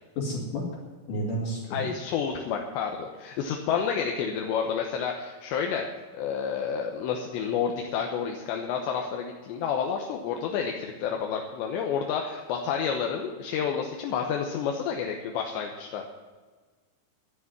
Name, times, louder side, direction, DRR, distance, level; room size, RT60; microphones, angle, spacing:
voice 1, 0.2-0.6 1.1-1.9, equal, 50° left, -5 dB, 3.7 m, -31 dB
voice 2, 1.7-5.9 6.1-16.0, left 7 dB, 75° left, 2 dB, 3.2 m, -30 dB
11.5 x 9.8 x 9.8 m, 1.4 s
omnidirectional pair, 5.4 m